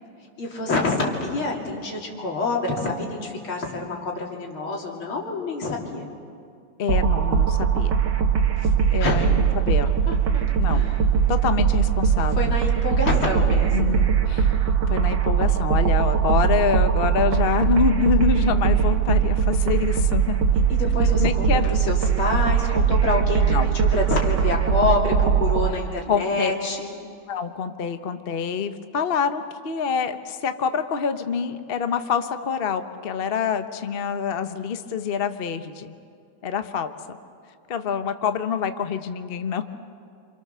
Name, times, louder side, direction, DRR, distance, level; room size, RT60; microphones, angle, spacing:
voice 1, 0.4-6.1 8.6-8.7 9.0-9.3 10.1-10.4 10.7-11.0 12.4-13.8 20.7-23.5 23.7-26.9, left 3 dB, 80° left, -1 dB, 3.8 m, -27 dB
voice 2, 6.8-7.9 8.9-9.9 10.6-10.9 11.3-12.5 13.7-14.6 14.9-20.4 21.0-21.7 23.5-23.7 26.1-26.5 27.3-35.9 36.4-36.9 37.7-39.6, left 6 dB, 45° left, 9 dB, 0.7 m, -26 dB
sound 1, 6.9-25.7, right 7 dB, 60° right, 1.8 m, -21 dB
27.5 x 27.0 x 6.8 m, 2.4 s
omnidirectional pair, 2.3 m